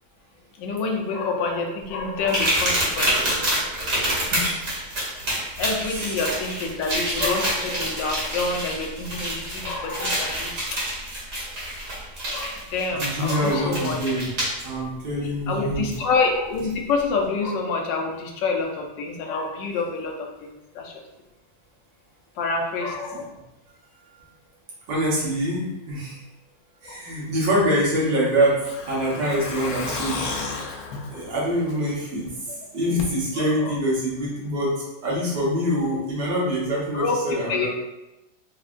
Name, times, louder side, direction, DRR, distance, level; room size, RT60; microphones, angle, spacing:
voice 1, 0.6-3.3 5.6-10.8 12.3-14.0 15.2-20.9 22.4-23.4 26.8-27.0 33.4-33.8 36.9-37.7, left 4 dB, 85° left, 1 dB, 1.3 m, -27 dB
sound 1, 2.3-14.6 15.9-16.0 16.6-16.7, right 1 dB, 40° right, 1.4 m, -27 dB
voice 2, 4.3-4.7 5.9-6.1 12.9-14.3 14.6-15.9 23.1-23.2 24.9-26.2 26.8-28.6 28.9-30.2 31.1-32.3 32.7-34.7 35.0-37.7, equal, 75° right, -6 dB, 1.8 m, -25 dB
Truck, 27.6-32.3 32.6-32.7 33.0-33.1, left 3 dB, 65° left, 0.9 m, -34 dB
4.7 x 2.7 x 2.5 m, 0.97 s
omnidirectional pair, 1.9 m